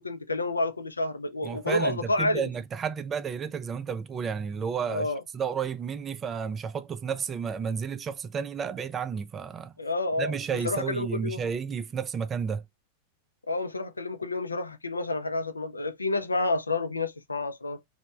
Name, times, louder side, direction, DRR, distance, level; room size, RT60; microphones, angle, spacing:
voice 1, 0.0-2.4 4.9-5.2 9.8-10.3 10.6-11.4 13.5-17.8, left 2 dB, 80° left, 0.4 m, -29 dB
voice 2, 1.4-9.7 10.2-12.6, right 6 dB, 25° right, 0.3 m, -32 dB
3.0 x 2.1 x 2.2 m
figure-of-eight pair, 90°, 0 cm